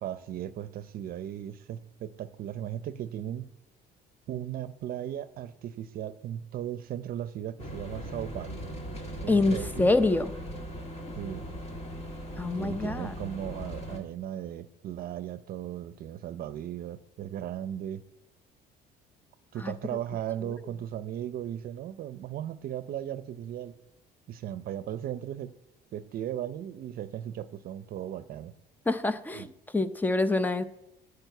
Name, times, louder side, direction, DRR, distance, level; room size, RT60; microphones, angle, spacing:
voice 1, 0.0-3.5 4.3-8.6 9.2-9.9 11.2-11.5 12.5-18.0 19.5-23.7 24.3-25.5 25.9-28.5 29.3-29.5, right 11 dB, 60° right, 14 dB, 0.6 m, -37 dB
sound 1, 7.6-14.0, equal, 40° left, 1.7 m, -39 dB
voice 2, 9.3-10.3 12.4-13.1 19.6-19.7 28.9-29.5 29.7-30.6, left 2 dB, 10° left, 12 dB, 0.5 m, -26 dB
11.0 x 4.9 x 8.0 m, 0.87 s
cardioid pair, 110°, 17 cm